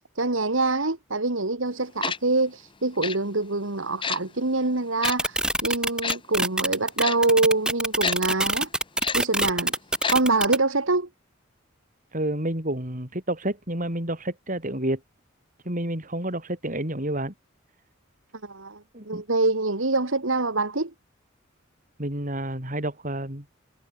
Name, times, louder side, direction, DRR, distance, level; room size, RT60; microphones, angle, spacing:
voice 1, 0.2-8.7 9.1-9.7 10.1-11.1 18.4-20.9, right 3 dB, 75° right, 2.2 m, -25 dB
Tick-tock, 2.0-2.2 3.0-3.2 4.0-4.2 5.0-5.1 6.0-6.2 7.0-7.2 8.0-8.2 9.0-9.2 10.0-10.2 10.4-10.5, left 6 dB, 25° left, 1.2 m, -28 dB
sound 1, 5.0-10.6, right 1 dB, 5° right, 3.2 m, -24 dB
voice 2, 12.1-15.0 15.6-17.3 18.9-19.2 22.0-23.4, right 1 dB, 40° right, 6.4 m, -29 dB
head